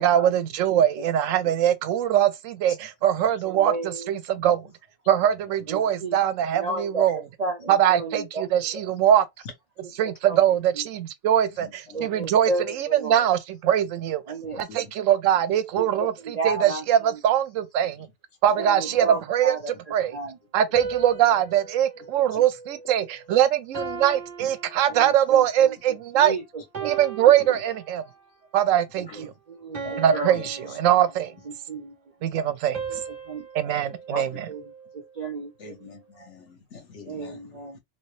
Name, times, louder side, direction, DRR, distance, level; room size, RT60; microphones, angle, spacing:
voice 1, 0.0-4.7 5.1-7.3 7.7-9.3 10.0-14.2 14.6-18.1 18.4-20.2 20.5-26.4 26.8-28.0 28.5-29.3 30.0-31.3 32.2-32.8 33.5-34.5, right 10 dB, 85° right, 1.0 m, -22 dB
voice 2, 3.6-4.0 5.7-6.2 6.5-8.4 10.3-10.4 11.9-13.2 14.3-14.6 15.8-15.9 16.4-16.8 18.6-19.6 20.1-20.3 25.3-25.4 26.2-26.4 26.8-26.9 29.2-29.8 30.1-30.3 31.7-31.9 33.3-33.4 34.1-34.6 35.2-35.7 37.1-37.8, right 3 dB, 55° right, 0.4 m, -32 dB
voice 3, 11.6-12.1 14.5-14.9 18.9-19.2 20.0-20.1 24.4-24.5 29.0-29.3 29.8-30.0 30.3-30.8 34.2-34.4 35.6-37.8, left 4 dB, 65° left, 1.3 m, -45 dB
sound 1, 18.5-19.8 20.7-23.3 23.7-25.5 26.0-26.3 26.7-28.3 28.8-29.0 29.7-31.6 32.7-35.1, right 4 dB, 35° right, 0.9 m, -38 dB
3.2 x 2.8 x 3.1 m
omnidirectional pair, 1.3 m